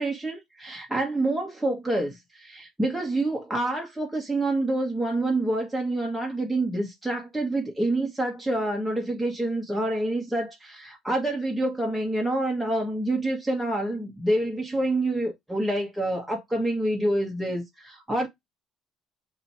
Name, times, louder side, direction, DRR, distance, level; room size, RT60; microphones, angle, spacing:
voice 1, 0.0-18.3, right 1 dB, 5° right, 1.2 m, -27 dB
2.8 x 2.7 x 4.2 m
cardioid pair, 100°, 0 cm